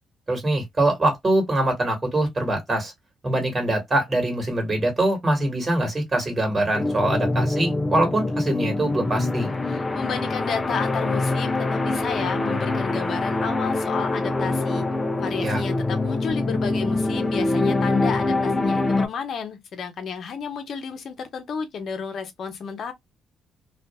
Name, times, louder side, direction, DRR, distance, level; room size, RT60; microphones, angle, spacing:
voice 1, 0.3-2.9 3.2-9.5 15.4-15.6, right 1 dB, 25° right, 1.5 m, -23 dB
sound 1, 6.7-19.1, left 2 dB, 20° left, 0.5 m, -24 dB
voice 2, 9.7-14.8 15.2-22.9, left 6 dB, 60° left, 0.8 m, -32 dB
2.5 x 2.5 x 2.2 m
cardioid pair, 90°, 0 cm